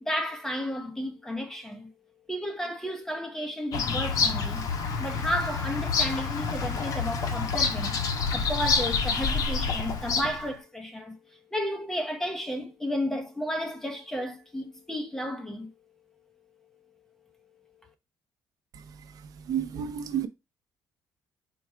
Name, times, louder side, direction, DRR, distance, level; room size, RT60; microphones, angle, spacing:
voice 1, 0.0-1.9 2.3-4.7 5.0-11.2 11.5-15.7, equal, 5° left, 0.9 m, -33 dB
Bird vocalization bird call bird song, 3.7-10.5, left 5 dB, 55° left, 0.8 m, -28 dB
voice 2, 19.5-20.3, right 9 dB, 60° right, 0.6 m, -30 dB
4.6 x 2.3 x 4.5 m
cardioid pair, 120°, 7 cm